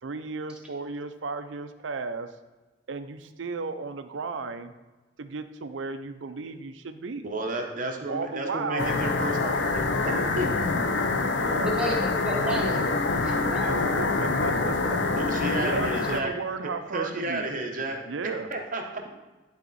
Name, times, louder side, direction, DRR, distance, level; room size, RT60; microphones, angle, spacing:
voice 1, 0.0-2.3 2.9-4.7 5.2-7.3 8.1-9.3 11.3-11.8 13.7-15.0 15.6-17.5 18.1-18.5, right 4 dB, 80° right, 10 dB, 0.5 m, -34 dB
voice 2, 7.2-10.5 15.2-16.3 16.9-19.1, right 2 dB, 45° right, 2 dB, 1.0 m, -32 dB
sound 1, 8.8-16.2, left 3 dB, 65° left, 0.6 m, -26 dB
voice 3, 11.6-12.9 13.2-13.7, equal, 5° right, -2 dB, 1.2 m, -31 dB
11.0 x 4.2 x 4.1 m, 1.2 s
head